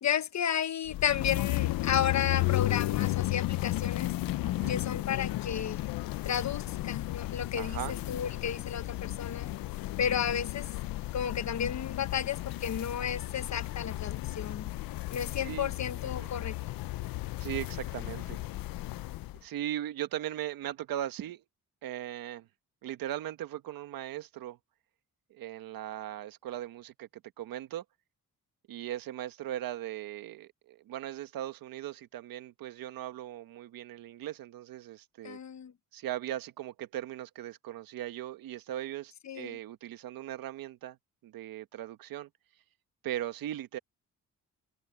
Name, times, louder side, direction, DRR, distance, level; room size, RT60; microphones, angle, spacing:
voice 1, 0.0-4.2 4.7-5.8 6.2-9.5 10.0-10.7 11.1-14.7 15.1-16.6 35.2-35.7 39.3-39.6, left 8 dB, 55° left, 1.3 m, -32 dB
sound 1, 0.9-19.4, left 17 dB, 90° left, 0.7 m, -34 dB
voice 2, 4.4-4.8 7.5-7.9 15.4-15.7 16.2-16.3 17.4-18.4 19.4-21.4 21.8-22.5 22.8-24.6 25.3-27.1 27.4-27.8 28.7-35.4 35.9-41.0 41.2-42.3 43.0-43.8, right 12 dB, 85° right, 1.5 m, -38 dB
cardioid pair, 90°, 34 cm